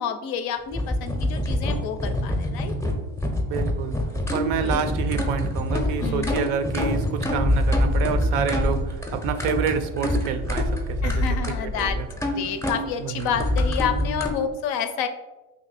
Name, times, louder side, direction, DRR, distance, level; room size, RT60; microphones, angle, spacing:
voice 1, 0.0-2.7 4.6-4.8 6.0-6.4 11.0-12.0 12.3-15.1, left 7 dB, 55° left, 8 dB, 0.5 m, -29 dB
sound 1, 0.7-14.3, left 1 dB, 5° left, 0.6 m, -25 dB
voice 2, 3.5-4.0 4.3-11.2 11.8-12.1 13.0-13.3, right 8 dB, 60° right, 8 dB, 0.5 m, -28 dB
2.8 x 2.6 x 4.0 m, 1.1 s
supercardioid pair, 85°, 46 cm